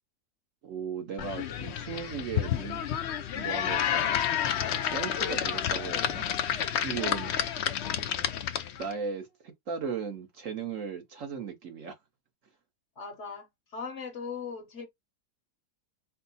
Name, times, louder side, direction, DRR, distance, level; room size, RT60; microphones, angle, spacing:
voice 1, 0.6-2.8 3.3-4.1 4.9-6.3 6.8-7.3 8.8-9.3 9.7-11.9, right 6 dB, 55° right, 1.1 m, -36 dB
sound 1, 1.2-8.9, left 9 dB, 85° left, 0.6 m, -30 dB
voice 2, 13.0-13.5 13.7-14.9, left 5 dB, 55° left, 1.0 m, -38 dB
4.5 x 2.0 x 4.0 m
omnidirectional pair, 1.8 m